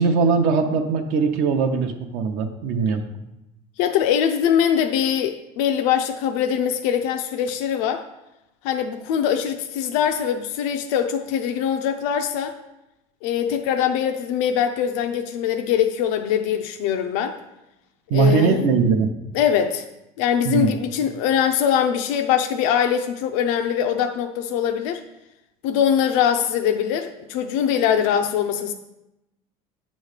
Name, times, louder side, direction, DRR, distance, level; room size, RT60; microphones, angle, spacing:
voice 1, 0.0-3.0 18.1-19.1 20.4-20.7, right 5 dB, 60° right, 5 dB, 0.7 m, -20 dB
voice 2, 3.8-8.0 8.6-12.5 13.2-17.4 18.1-18.6 19.3-19.8 20.2-25.0 25.6-28.7, left 9 dB, 85° left, 5 dB, 0.5 m, -22 dB
8.8 x 3.1 x 6.5 m, 0.94 s
cardioid pair, 165°, 16 cm